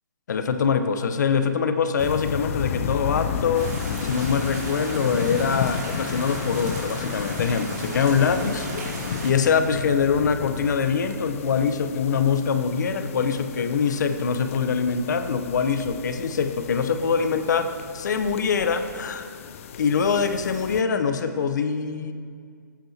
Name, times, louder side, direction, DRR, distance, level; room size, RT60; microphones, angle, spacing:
voice 1, 0.3-3.7 4.0-8.7 9.2-17.7 17.9-19.2 19.8-22.1, left 6 dB, 60° left, 8 dB, 0.9 m, -23 dB
sound 1, 2.0-20.8, left 8 dB, 40° left, 0.5 m, -33 dB
sound 2, 3.5-9.3, right 2 dB, 50° right, 2.7 m, -36 dB
17.0 x 8.7 x 2.8 m, 2.1 s
hypercardioid pair, 140°, 11 cm